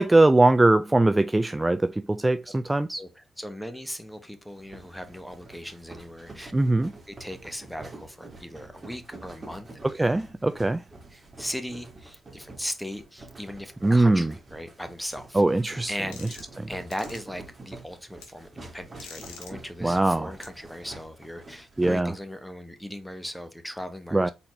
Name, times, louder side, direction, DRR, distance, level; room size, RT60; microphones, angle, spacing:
voice 1, 0.0-3.0 6.5-6.9 10.0-10.8 13.8-14.3 15.3-15.9 16.6-16.7 19.8-20.3 21.8-22.1 24.1-24.3, right 2 dB, 20° right, 0.4 m, -21 dB
voice 2, 3.0-6.5 7.1-9.7 11.1-15.4 15.9-24.3, equal, 5° left, 1.3 m, -38 dB
sound 1, 4.5-21.9, right 2 dB, 35° right, 1.9 m, -47 dB
sound 2, 15.1-15.2 16.1-16.6 16.9-17.2 18.2-18.3 19.0-19.5 20.4-20.5, left 6 dB, 85° left, 1.0 m, -44 dB
4.2 x 4.1 x 3.1 m
hypercardioid pair, 45°, 0 cm